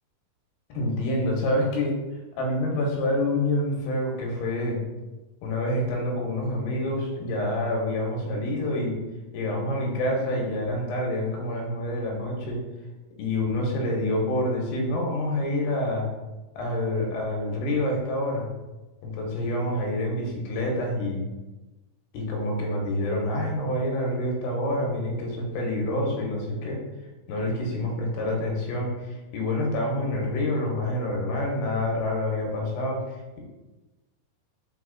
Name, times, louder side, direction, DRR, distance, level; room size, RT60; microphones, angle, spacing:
voice 1, 0.7-1.9 2.4-4.8 5.4-8.9 9.3-12.6 13.2-16.1 16.6-18.5 19.0-21.2 22.1-26.8 27.3-33.4, left 1 dB, 85° left, -1 dB, 2.6 m, -27 dB
5.0 x 4.3 x 2.3 m, 1.1 s
omnidirectional pair, 4.4 m